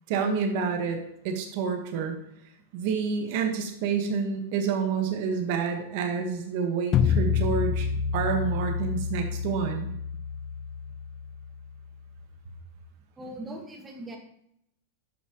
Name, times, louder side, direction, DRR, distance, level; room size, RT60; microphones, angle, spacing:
voice 1, 0.1-1.0 1.2-2.1 2.7-7.9 8.1-9.9, right 6 dB, 55° right, 4 dB, 1.6 m, -28 dB
sound 1, 6.9-12.0, left 7 dB, 35° left, 0.5 m, -28 dB
voice 2, 13.2-14.2, right 1 dB, 15° right, 2 dB, 1.8 m, -40 dB
11.0 x 5.8 x 3.1 m, 0.75 s
hypercardioid pair, 130°, 0 cm